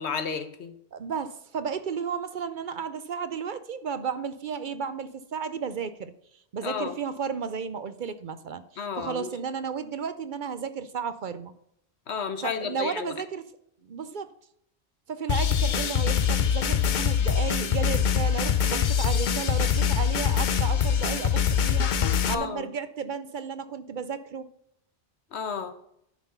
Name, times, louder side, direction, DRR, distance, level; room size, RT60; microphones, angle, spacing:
voice 1, 0.0-0.7 6.6-6.9 8.8-9.3 12.1-13.1 22.3-22.7 25.3-25.7, left 6 dB, 85° left, 9 dB, 1.3 m, -32 dB
voice 2, 0.9-6.1 6.5-11.5 12.4-13.4 13.8-14.3 15.1-24.5, right 6 dB, 55° right, 12 dB, 0.7 m, -33 dB
sound 1, 15.3-22.3, left 8 dB, 55° left, 0.7 m, -24 dB
10.5 x 5.9 x 5.5 m, 0.73 s
omnidirectional pair, 1.1 m